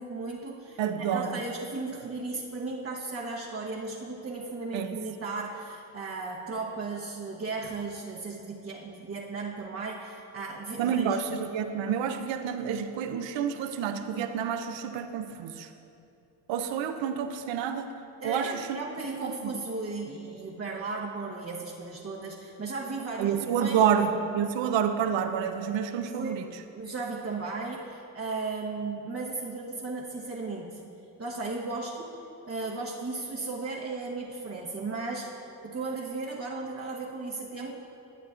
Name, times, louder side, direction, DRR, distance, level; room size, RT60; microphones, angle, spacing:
voice 1, 0.0-11.2 18.2-23.9 26.2-26.4 26.7-30.8 31.2-37.7, right 3 dB, 30° right, -4 dB, 0.9 m, -36 dB
voice 2, 0.8-1.4 4.7-5.0 10.8-15.7 16.5-17.9 18.2-18.8 19.2-19.5 23.2-26.6, right 8 dB, 65° right, 8 dB, 0.7 m, -29 dB
11.5 x 8.1 x 2.5 m, 2.8 s
supercardioid pair, 75°, 48 cm